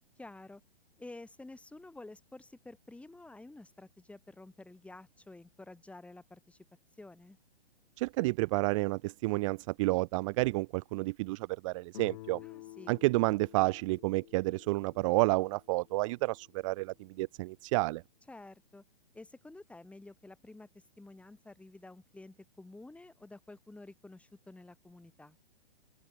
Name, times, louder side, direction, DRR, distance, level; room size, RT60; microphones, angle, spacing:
voice 1, 0.2-0.6 1.0-6.6 7.0-7.4 12.4-13.0 18.3-18.8 19.1-20.7 21.0-25.4, left 2 dB, 5° left, 5.4 m, -51 dB
voice 2, 8.0-12.4 12.9-18.0, right 23 dB, 30° right, 1.1 m, -30 dB
Guitar, 11.9-16.7, left 18 dB, 40° left, 7.0 m, -52 dB
open air
figure-of-eight pair, 125°, 31 cm